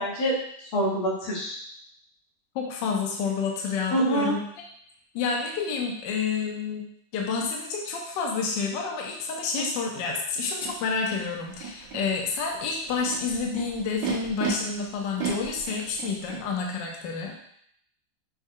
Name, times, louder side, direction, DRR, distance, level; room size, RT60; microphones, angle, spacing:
voice 1, 0.0-1.6 3.9-4.3 9.5-9.6, right 1 dB, 90° left, -5 dB, 2.1 m, -26 dB
voice 2, 2.5-4.7 5.1-6.8 7.1-17.4, left 5 dB, 70° left, 0 dB, 1.3 m, -29 dB
Animal, 10.6-10.7 11.5-12.0 12.8-14.5 15.2-16.4, right 8 dB, 65° right, 1.4 m, -33 dB
6.2 x 2.2 x 3.6 m, 0.68 s
omnidirectional pair, 2.1 m